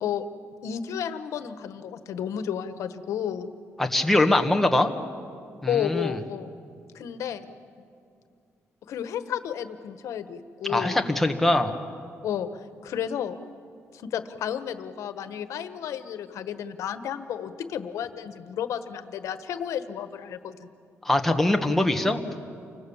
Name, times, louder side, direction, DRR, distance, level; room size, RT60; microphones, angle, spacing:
voice 1, 0.6-3.5 5.7-6.5 6.9-7.5 7.8-7.9 8.9-11.0 12.2-12.5 12.8-13.4 13.9-20.7, left 9 dB, 90° left, 11 dB, 1.3 m, -32 dB
voice 2, 3.8-4.9 5.6-6.1 10.7-11.7 21.0-22.2, left 1 dB, 5° left, 4 dB, 1.4 m, -22 dB
30.0 x 25.0 x 7.2 m, 2.3 s
cardioid pair, 155°, 5 cm